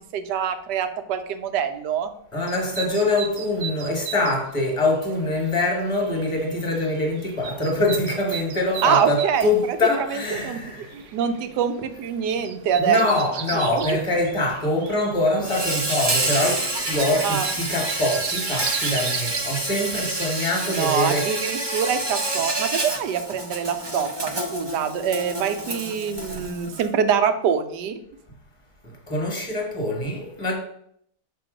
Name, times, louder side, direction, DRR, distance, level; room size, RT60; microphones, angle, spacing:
voice 1, 0.1-2.1 8.8-9.8 10.3-10.6 10.9-13.1 13.5-14.0 17.2-17.6 20.6-28.0, right 7 dB, 85° right, 1.3 m, -25 dB
voice 2, 2.3-10.9 12.8-21.3 29.1-30.5, left 2 dB, 20° left, 1.2 m, -24 dB
sound 1, 2.4-20.2, right 7 dB, 70° right, 0.7 m, -38 dB
Insect, 15.4-26.9, right 2 dB, 45° right, 0.3 m, -28 dB
6.8 x 3.0 x 5.0 m
omnidirectional pair, 1.8 m